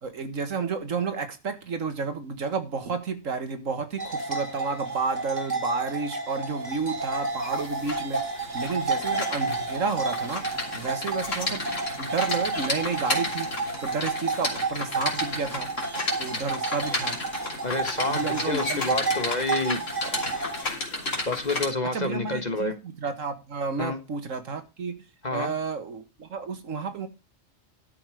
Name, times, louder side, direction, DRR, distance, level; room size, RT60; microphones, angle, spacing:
voice 1, 0.0-11.7 12.0-15.7 16.2-17.2 18.0-19.0 21.9-25.0 25.3-27.1, right 4 dB, 75° right, 2.1 m, -31 dB
sound 1, 4.0-20.6, right 3 dB, 35° right, 2.1 m, -31 dB
sound 2, 7.0-21.7, left 2 dB, 70° left, 3.4 m, -33 dB
voice 2, 17.6-20.1 21.3-22.7 23.8-24.0 25.2-25.5, left 2 dB, 35° left, 1.5 m, -29 dB
12.0 x 6.8 x 4.9 m
omnidirectional pair, 1.3 m